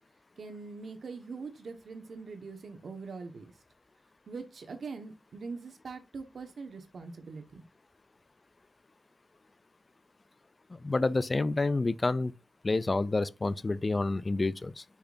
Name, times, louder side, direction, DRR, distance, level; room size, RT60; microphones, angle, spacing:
voice 1, 0.4-3.5 4.3-7.6, right 4 dB, 65° right, 1.3 m, -42 dB
voice 2, 10.7-12.3 12.6-14.8, left 3 dB, 25° left, 0.3 m, -29 dB
6.7 x 5.9 x 2.6 m
wide cardioid pair, 145°, 0 cm